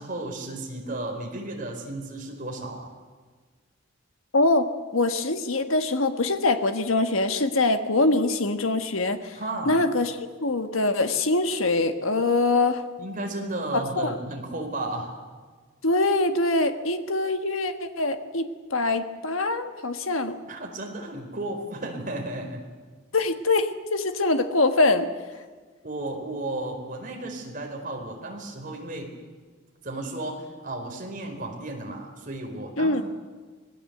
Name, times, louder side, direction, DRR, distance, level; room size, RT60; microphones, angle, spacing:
voice 1, 0.0-2.9 9.3-9.8 13.0-15.2 20.5-22.6 25.8-29.1 29.8-33.0, right 2 dB, 40° right, 2 dB, 4.4 m, -34 dB
voice 2, 4.3-4.7 4.9-9.4 9.7-10.1 10.4-12.8 14.0-14.2 15.8-20.4 23.1-25.1 32.8-33.0, left 2 dB, 85° left, 8 dB, 1.6 m, -23 dB
25.5 x 19.0 x 8.0 m, 1.4 s
head